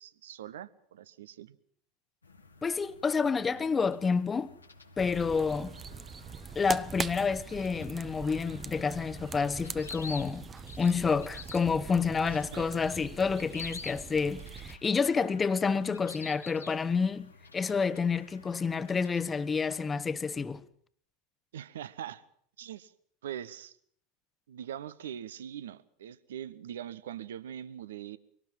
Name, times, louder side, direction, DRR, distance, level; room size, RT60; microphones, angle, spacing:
voice 1, 0.0-1.6 12.2-12.8 21.5-22.2 22.6-22.9 23.2-23.8 24.5-28.2, right 10 dB, 70° right, 1.1 m, -42 dB
sound 1, 2.2-20.0, left 4 dB, 90° left, 2.4 m, -50 dB
voice 2, 2.6-4.6 5.0-5.8 6.5-10.5 10.8-20.6, left 5 dB, 20° left, 1.1 m, -29 dB
sound 2, 5.0-14.8, right 6 dB, 25° right, 0.9 m, -42 dB
24.0 x 18.5 x 7.4 m
figure-of-eight pair, 85°, 0 cm